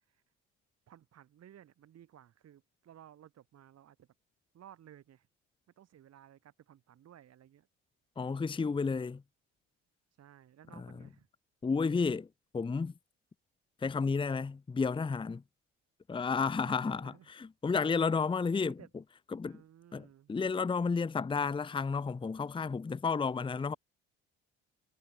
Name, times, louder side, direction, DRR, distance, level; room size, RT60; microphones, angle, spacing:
voice 1, 0.9-4.1 4.5-5.3 5.8-7.7 10.2-11.3 16.6-17.3 18.6-18.9 19.4-20.4, right 11 dB, 55° right, 6.0 m, -57 dB
voice 2, 8.2-9.2 11.6-12.3 12.5-12.9 13.8-15.4 16.1-18.7 19.3-19.6 19.9-23.8, left 5 dB, 15° left, 0.7 m, -32 dB
supercardioid pair, 80°, 30 cm